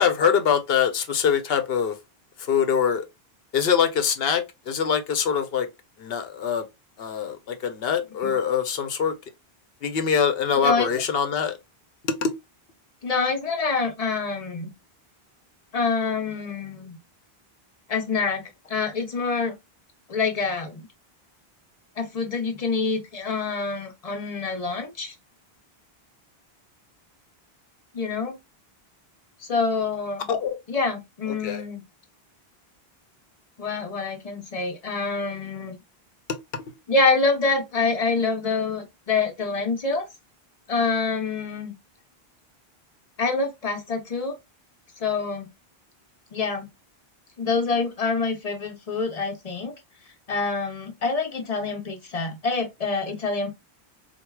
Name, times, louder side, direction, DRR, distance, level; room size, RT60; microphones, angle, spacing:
voice 1, 0.0-2.0 2.4-3.0 3.5-5.7 6.0-6.7 7.0-9.1 9.8-11.6 12.0-12.3 30.3-30.6 31.3-31.6 36.3-36.6, left 7 dB, 70° left, 0.9 m, -24 dB
voice 2, 13.0-14.7 15.7-17.0 17.9-18.4 18.7-19.5 20.1-20.9 22.0-25.1 27.9-28.4 29.5-30.3 30.7-31.8 33.6-35.8 36.9-40.1 40.7-41.7 43.2-44.3 45.0-45.5 46.3-46.7 47.4-49.7 50.3-53.5, left 4 dB, 40° left, 0.9 m, -26 dB
4.3 x 2.3 x 2.2 m
omnidirectional pair, 1.0 m